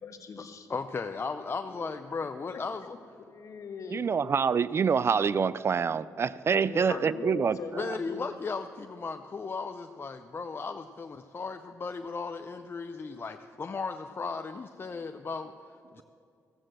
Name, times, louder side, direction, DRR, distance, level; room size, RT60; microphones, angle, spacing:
voice 1, 0.0-0.7 1.7-1.9 3.3-4.1 6.6-8.2, left 5 dB, 60° left, 5 dB, 1.3 m, -40 dB
voice 2, 0.7-2.9 6.9-7.0 7.8-16.0, left 4 dB, 35° left, 7 dB, 0.5 m, -36 dB
voice 3, 3.9-7.6, right 6 dB, 45° right, 18 dB, 0.3 m, -26 dB
15.0 x 7.7 x 7.7 m, 2.6 s
cardioid pair, 70°, 6 cm